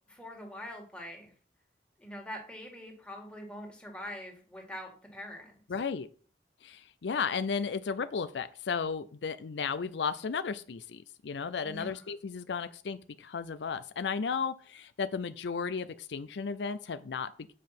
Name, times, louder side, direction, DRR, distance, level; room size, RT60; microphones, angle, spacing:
voice 1, 0.1-1.3 2.0-5.6 11.6-12.1, equal, 5° left, 0 dB, 2.0 m, -44 dB
voice 2, 5.7-6.1 6.6-17.3, left 5 dB, 80° left, 13 dB, 0.5 m, -34 dB
7.6 x 5.2 x 5.9 m, 0.42 s
head